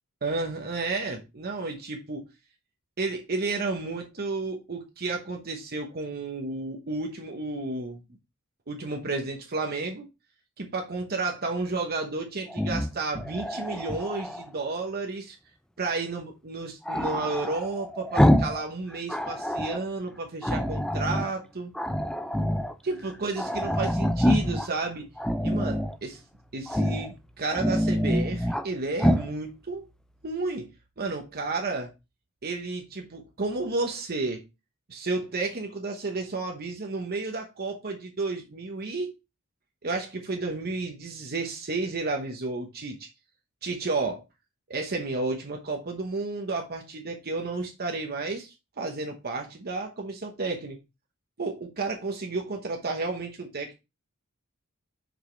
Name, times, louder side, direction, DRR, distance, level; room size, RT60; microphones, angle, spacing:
voice 1, 0.2-2.3 3.0-8.0 8.7-10.1 10.6-15.4 15.8-21.7 22.8-25.1 25.4-26.2 26.5-29.9 30.2-30.7 31.0-31.9 32.4-34.4 34.9-39.1 39.8-43.1 43.6-44.2 44.7-50.8 51.4-53.7, right 3 dB, 45° right, 1.0 m, -32 dB
Growling, 12.5-14.5 16.9-18.6 18.9-19.8 20.4-21.3 21.7-22.7 23.1-23.2 23.4-24.7 25.2-26.0 26.7-27.1 27.4-28.7 29.0-29.3, equal, 5° left, 0.4 m, -26 dB
6.1 x 5.2 x 3.2 m
head